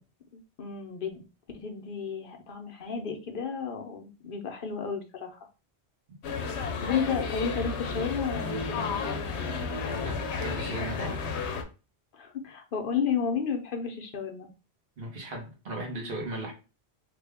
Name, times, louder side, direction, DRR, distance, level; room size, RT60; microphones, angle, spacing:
voice 1, 0.3-1.2 1.5-5.4 6.8-9.6 12.1-14.5, left 6 dB, 55° left, 4 dB, 0.8 m, -33 dB
sound 1, 6.2-11.6, left 5 dB, 85° left, 0.9 m, -32 dB
voice 2, 9.9-11.2 15.0-16.5, right 1 dB, 60° right, -1 dB, 1.4 m, -37 dB
3.4 x 2.3 x 3.4 m, 0.32 s
omnidirectional pair, 1.1 m